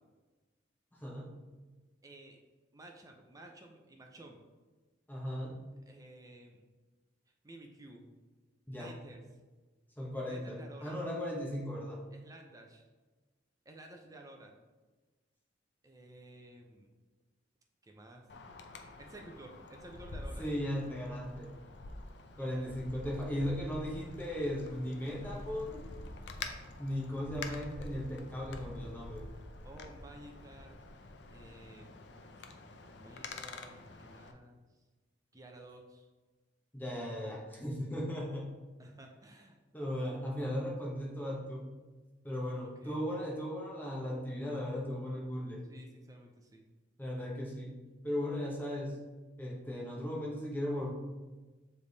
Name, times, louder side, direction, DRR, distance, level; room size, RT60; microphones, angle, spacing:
voice 1, 1.0-1.3 5.1-5.6 8.7-8.9 10.0-12.0 20.4-21.5 22.4-25.8 26.8-29.2 36.7-38.5 39.7-41.7 42.2-45.6 47.0-47.7 48.0-49.0 49.4-50.9, equal, 10° left, -3 dB, 1.0 m, -37 dB
voice 2, 2.0-2.4 2.7-4.4 5.9-6.7 7.4-8.1 8.7-9.2 10.2-11.0 12.1-12.9 13.6-14.6 15.8-17.0 17.8-18.3 19.0-20.5 22.5-22.7 29.6-30.8 31.3-32.0 33.0-34.7 35.3-36.1 38.8-39.6 42.6-43.0 45.7-46.7, right 1 dB, 20° right, 2 dB, 0.6 m, -53 dB
Wind, 18.3-34.3, left 2 dB, 60° left, 0.6 m, -47 dB
7.0 x 3.4 x 4.0 m, 1.2 s
head